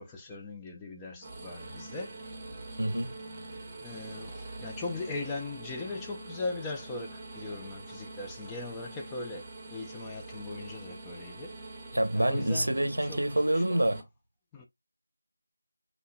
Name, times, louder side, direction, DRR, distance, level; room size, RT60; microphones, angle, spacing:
voice 1, 0.0-2.2 3.8-11.6 12.1-13.2 13.5-14.0 14.5-14.7, left 3 dB, 10° left, 0.4 m, -39 dB
sound 1, 1.2-14.0, right 2 dB, 15° right, 0.8 m, -44 dB
voice 2, 2.8-3.1 11.9-14.0, right 1 dB, 85° right, 0.8 m, -27 dB
4.2 x 2.8 x 2.2 m
figure-of-eight pair, 170°, 0 cm